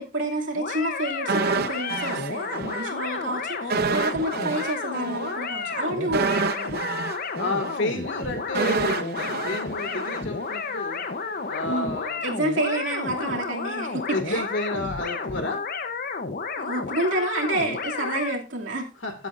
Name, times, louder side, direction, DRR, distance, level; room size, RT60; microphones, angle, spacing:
voice 1, 0.0-6.8 11.7-11.9 12.2-14.4 16.6-18.9, right 1 dB, 75° right, 0 dB, 2.7 m, -29 dB
sound 1, 0.5-18.4, left 4 dB, 50° left, 1.0 m, -32 dB
sound 2, 1.3-2.9 3.2-3.3 3.7-10.8 11.1-11.2, right 5 dB, 55° right, 0.7 m, -28 dB
voice 2, 7.4-11.0 11.5-12.2 14.1-15.6 19.0-19.1, left 2 dB, 70° left, 6 dB, 2.4 m, -30 dB
16.0 x 8.1 x 2.6 m, 0.33 s
head